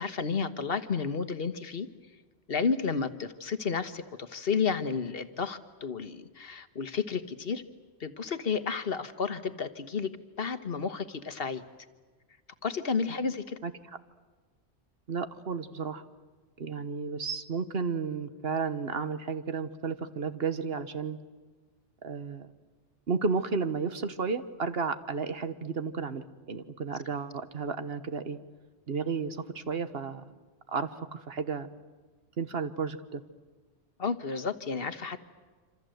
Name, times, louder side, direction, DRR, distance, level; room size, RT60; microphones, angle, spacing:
voice 1, 0.0-1.9 2.5-7.6 8.0-10.1 10.4-11.6 12.6-13.6 34.0-35.2, left 5 dB, 55° left, 11 dB, 1.4 m, -31 dB
voice 2, 15.1-16.0 16.6-21.2 22.0-22.5 23.1-28.4 28.9-30.2 30.7-31.7 32.4-33.2, right 5 dB, 60° right, 11 dB, 1.4 m, -33 dB
26.5 x 26.5 x 7.9 m, 1.4 s
omnidirectional pair, 1.2 m